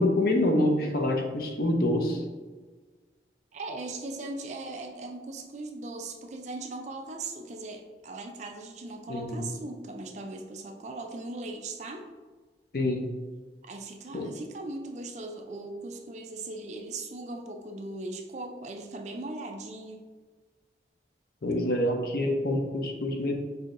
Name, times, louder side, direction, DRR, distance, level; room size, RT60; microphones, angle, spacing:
voice 1, 0.0-2.2 9.1-9.4 12.7-13.1 14.1-14.3 21.4-23.4, left 1 dB, 55° left, 3 dB, 0.5 m, -26 dB
voice 2, 3.5-12.1 13.6-20.0, right 2 dB, 40° right, 4 dB, 0.4 m, -39 dB
5.4 x 2.7 x 2.5 m, 1.4 s
head